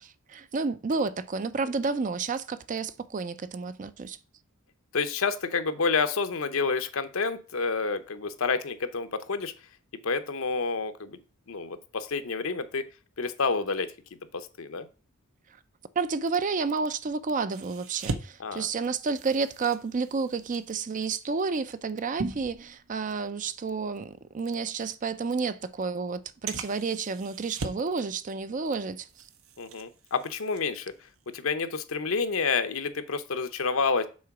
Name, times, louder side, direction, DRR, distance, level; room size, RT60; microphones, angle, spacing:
voice 1, 0.0-4.2 16.0-29.1, right 4 dB, 35° right, 0.4 m, -30 dB
voice 2, 4.9-9.5 10.0-11.2 11.5-12.8 13.2-13.9 14.3-14.9 18.4-18.7 29.6-30.9 31.3-34.1, left 4 dB, 70° left, 0.8 m, -29 dB
sound 1, 17.5-23.3 23.7-23.9 24.5-24.6 25.4-25.5 26.5-28.0 28.3-28.8 29.1-31.3 31.6-31.9, right 3 dB, 70° right, 0.8 m, -40 dB
6.3 x 3.9 x 5.9 m
head